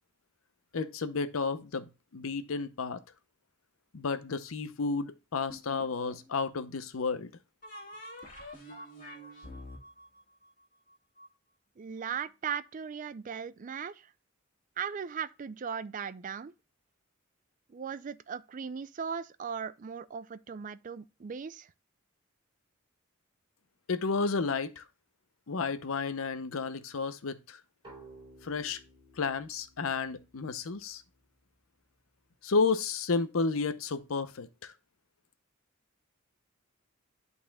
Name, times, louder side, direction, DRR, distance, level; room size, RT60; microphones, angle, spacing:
voice 1, 0.7-1.9 2.1-3.0 3.9-7.3 23.9-24.8 25.5-27.6 28.4-28.8 29.2-31.0 32.4-34.7, left 4 dB, 80° left, 0.7 m, -32 dB
sound 1, 5.5-6.3 7.6-11.3, left 1 dB, 40° left, 2.1 m, -47 dB
voice 2, 11.8-14.1 14.8-16.5 17.7-21.7, right 7 dB, 40° right, 0.3 m, -38 dB
sound 2, 27.8-31.3, right 2 dB, 25° right, 3.4 m, -55 dB
11.0 x 4.1 x 2.2 m
head